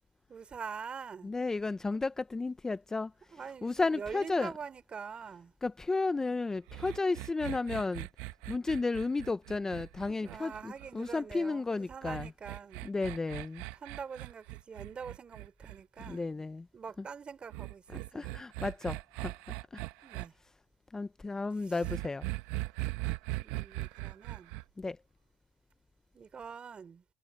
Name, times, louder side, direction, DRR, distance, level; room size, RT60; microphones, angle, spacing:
voice 1, 0.3-1.3 3.3-5.5 10.1-12.8 13.7-16.4 16.7-18.3 20.0-20.3 21.5-21.9 23.4-24.5 26.1-27.0, right 6 dB, 35° right, 3.2 m, -45 dB
voice 2, 1.2-3.1 3.6-4.5 5.6-8.1 8.5-12.3 12.8-13.6 16.1-16.7 18.1-19.3 19.7-19.8 20.9-22.3 24.8-25.0, left 3 dB, 15° left, 0.6 m, -33 dB
sound 1, 6.7-11.1 12.0-16.2 17.5-20.3 21.8-24.6, right 19 dB, 85° right, 1.1 m, -40 dB
supercardioid pair, 90°, 3 cm